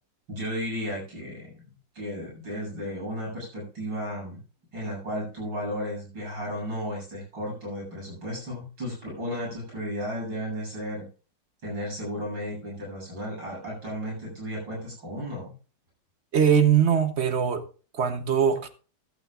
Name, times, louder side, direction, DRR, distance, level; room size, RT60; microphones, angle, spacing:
voice 1, 0.3-4.4 4.7-11.0 11.6-15.5, equal, 90° right, 8.5 m, -34 dB
voice 2, 16.3-17.6 17.9-18.7, right 8 dB, 50° right, 0.9 m, -21 dB
14.5 x 12.0 x 2.4 m
omnidirectional pair, 2.0 m